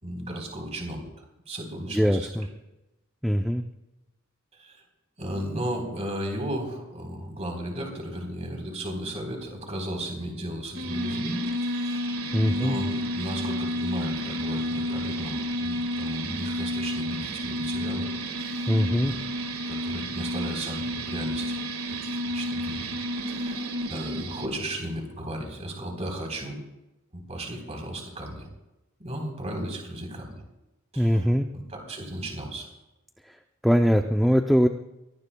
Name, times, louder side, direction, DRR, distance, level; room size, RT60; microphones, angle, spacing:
voice 1, 0.0-1.0 1.5-2.5 4.6-4.8 5.2-12.1 12.4-18.1 18.4-18.8 19.0-19.3 19.7-21.6 22.0-22.9 23.3-26.6 27.1-28.5 29.0-30.4 30.9-32.7, right 1 dB, 30° right, 2 dB, 3.9 m, -35 dB
voice 2, 1.9-2.5 3.2-3.6 12.3-12.8 18.7-19.1 31.0-31.5 33.6-34.7, equal, ahead, 4 dB, 0.5 m, -21 dB
sound 1, 10.8-24.5, equal, 85° right, 1.8 m, -31 dB
24.0 x 18.5 x 2.3 m, 0.97 s
head